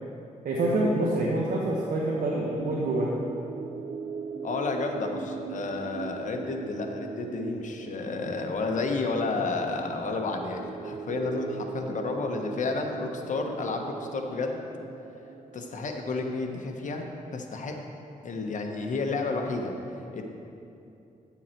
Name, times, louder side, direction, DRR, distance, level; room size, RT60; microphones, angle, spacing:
voice 1, 0.4-3.1, right 1 dB, 75° right, -4 dB, 1.2 m, -26 dB
sound 1, 1.6-17.2, right 6 dB, 55° right, 0.5 m, -41 dB
voice 2, 4.4-14.6 15.5-17.0 17.3-17.8 18.2-20.2, left 3 dB, 60° left, 3 dB, 1.1 m, -31 dB
10.0 x 7.1 x 4.5 m, 2.7 s
cardioid pair, 90°, 15 cm